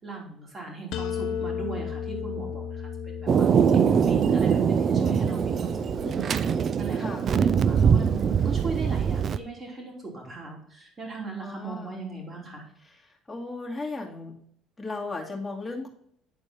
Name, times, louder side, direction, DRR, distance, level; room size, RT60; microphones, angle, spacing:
voice 1, 0.0-6.2 6.8-12.6, right 4 dB, 30° right, -1 dB, 3.3 m, -38 dB
sound 1, 0.9-6.7, left 7 dB, 70° left, 0.7 m, -35 dB
Thunder, 3.3-9.4, right 7 dB, 45° right, 0.4 m, -23 dB
voice 2, 6.9-7.3 11.4-12.0 12.8-14.4 14.8-15.9, left 3 dB, 10° left, -2 dB, 2.5 m, -36 dB
10.5 x 4.4 x 4.4 m, 0.68 s
supercardioid pair, 80°, 0 cm